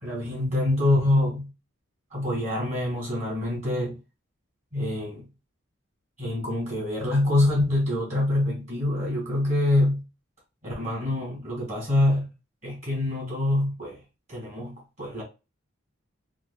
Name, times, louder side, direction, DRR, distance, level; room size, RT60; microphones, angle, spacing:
voice 1, 0.0-1.5 2.1-4.0 4.7-5.2 6.2-10.0 10.6-12.3 12.6-14.0 14.3-15.2, left 1 dB, 40° right, 2.0 m, -25 dB
4.7 x 2.4 x 2.2 m
head